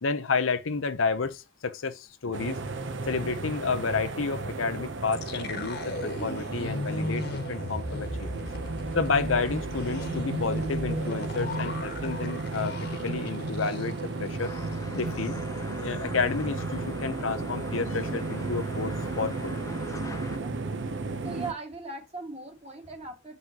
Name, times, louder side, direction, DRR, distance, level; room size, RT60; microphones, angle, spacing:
voice 1, 0.0-2.6 3.0-8.5 8.9-14.5 14.9-15.4 15.8-19.5, left 4 dB, 85° left, 0.8 m, -30 dB
sound 1, 2.3-21.5, right 3 dB, 65° right, 0.8 m, -34 dB
sound 2, 5.1-14.2 14.4-14.6 15.0-15.4, left 2 dB, 60° left, 1.4 m, -37 dB
sound 3, 14.4-20.4, left 2 dB, 15° left, 0.4 m, -42 dB
voice 2, 21.2-23.4, right 3 dB, 30° right, 1.9 m, -39 dB
7.6 x 5.5 x 2.9 m
head